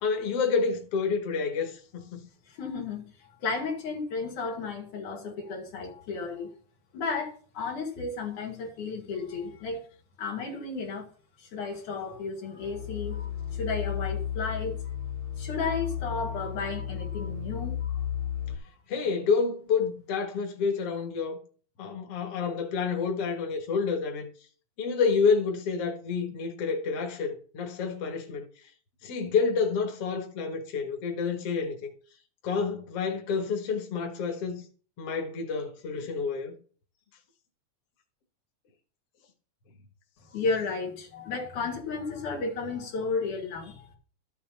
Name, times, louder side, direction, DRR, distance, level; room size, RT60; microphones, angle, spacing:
voice 1, 0.0-2.2 18.9-21.4 21.8-24.3 24.8-28.5 29.0-31.9 32.4-34.6 35.0-36.6, left 5 dB, 55° left, 2.3 m, -29 dB
voice 2, 2.6-6.5 6.9-9.9 10.2-11.1 11.5-14.8 15.4-18.0 40.3-44.0, left 4 dB, 85° left, 3.8 m, -33 dB
sound 1, 12.6-18.5, left 9 dB, 50° right, 1.1 m, -33 dB
13.0 x 7.3 x 4.2 m
omnidirectional pair, 3.4 m